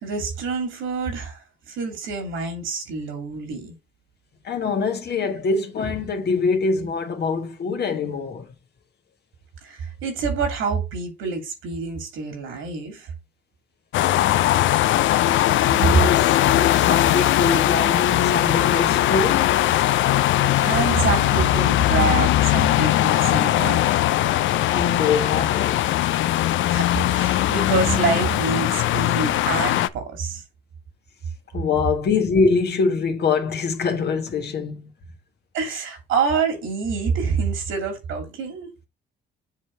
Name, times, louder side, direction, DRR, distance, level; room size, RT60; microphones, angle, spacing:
voice 1, 0.0-3.7 9.6-13.1 15.9-16.0 16.8-16.9 20.6-23.8 26.7-30.4 35.5-38.7, right 5 dB, 85° right, 2.7 m, -26 dB
voice 2, 4.4-8.4 15.7-19.5 24.7-25.9 31.5-34.9, left 4 dB, 55° left, 1.5 m, -24 dB
sound 1, 13.9-29.9, left 14 dB, 75° left, 0.4 m, -20 dB
7.5 x 3.3 x 4.3 m
cardioid pair, 90°, 20 cm